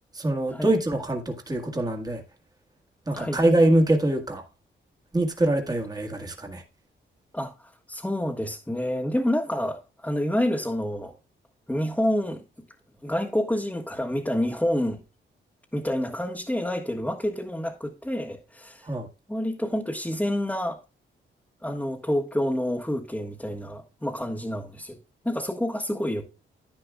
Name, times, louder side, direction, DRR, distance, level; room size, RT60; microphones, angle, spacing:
voice 1, 0.1-2.2 3.1-4.4 5.1-6.6 18.8-19.1, right 1 dB, 20° right, 1.7 m, -24 dB
voice 2, 7.3-11.1 11.7-12.4 13.0-15.0 15.7-18.9 19.3-20.8 21.6-25.0 25.2-26.3, left 1 dB, 5° left, 1.4 m, -28 dB
10.5 x 9.8 x 2.4 m
cardioid pair, 75°, 21 cm